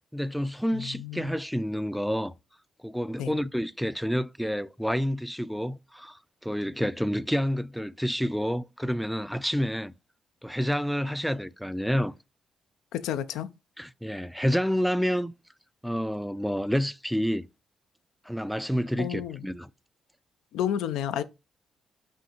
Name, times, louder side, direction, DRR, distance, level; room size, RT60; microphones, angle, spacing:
voice 1, 0.1-2.3 2.8-9.9 10.4-12.1 13.8-15.3 15.8-17.5 18.3-19.7, equal, ahead, 0.3 m, -29 dB
voice 2, 0.7-1.3 3.2-3.3 12.9-13.5 19.0-19.4 20.5-21.2, left 10 dB, 85° left, 0.3 m, -31 dB
5.2 x 2.6 x 2.9 m
supercardioid pair, 65°, 0 cm